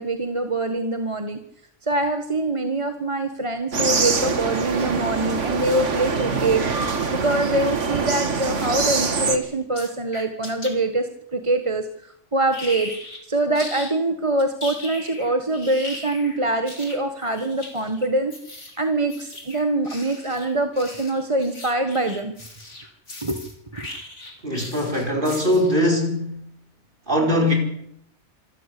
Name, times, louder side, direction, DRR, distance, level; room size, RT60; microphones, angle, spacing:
voice 1, 0.0-1.4 1.8-6.6 7.1-12.9 13.3-18.3 18.8-22.3 23.2-23.4 23.7-23.9, right 2 dB, 25° right, 1.5 m, -24 dB
sound 1, 3.7-9.4, right 4 dB, 85° right, 2.1 m, -24 dB
sound 2, 9.7-10.7 12.5-13.2 13.5-13.9 14.4-25.8, left 2 dB, 85° left, 4.5 m, -38 dB
voice 2, 24.4-26.4 27.1-27.5, left 1 dB, 45° right, 5.5 m, -21 dB
26.5 x 13.5 x 8.5 m
omnidirectional pair, 1.2 m